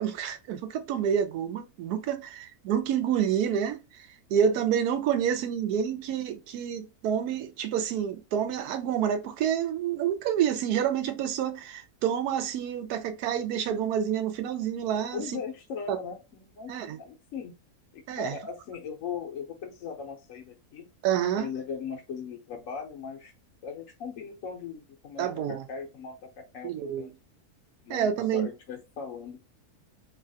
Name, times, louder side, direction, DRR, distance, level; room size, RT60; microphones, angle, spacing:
voice 1, 0.0-3.8 4.3-15.4 15.9-16.0 16.7-17.0 18.1-18.4 21.0-21.5 25.2-25.6 26.6-27.1 27.9-28.5, right 9 dB, 80° right, 1.1 m, -28 dB
voice 2, 15.1-17.5 17.9-20.9 21.4-23.3 23.6-27.1 27.8-29.4, left 6 dB, 65° left, 0.8 m, -39 dB
3.2 x 2.3 x 2.6 m
omnidirectional pair, 1.6 m